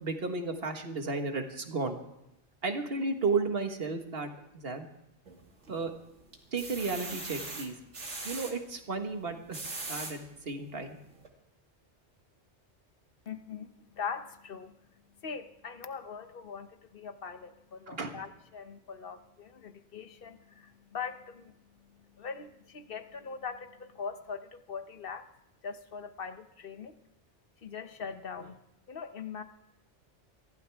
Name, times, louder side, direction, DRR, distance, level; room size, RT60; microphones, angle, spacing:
voice 1, 0.0-2.0 2.6-4.9 5.7-5.9 6.5-7.8 8.2-9.6 9.9-11.0 17.9-18.2, right 3 dB, 55° right, 5 dB, 1.8 m, -33 dB
sound 1, 5.3-5.9 6.3-8.5 9.3-10.1 10.8-10.9 11.2-11.3, right 3 dB, 80° right, 2.5 m, -40 dB
voice 2, 13.3-25.3 25.6-27.0 27.6-28.6 28.9-29.4, left 6 dB, 55° left, 9 dB, 1.1 m, -42 dB
23.5 x 15.5 x 3.5 m, 0.85 s
omnidirectional pair, 1.2 m